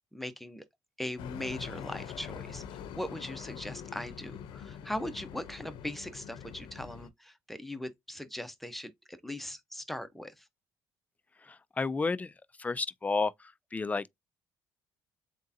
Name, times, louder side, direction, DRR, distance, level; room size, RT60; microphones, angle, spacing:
voice 1, 0.1-0.6 1.0-10.5, left 1 dB, ahead, 0.9 m, -40 dB
sound 1, 1.2-7.1, left 8 dB, 75° left, 0.7 m, -44 dB
voice 2, 11.8-12.3 12.6-13.3 13.7-14.1, left 4 dB, 20° left, 0.4 m, -30 dB
3.7 x 3.6 x 2.7 m
cardioid pair, 95°, 8 cm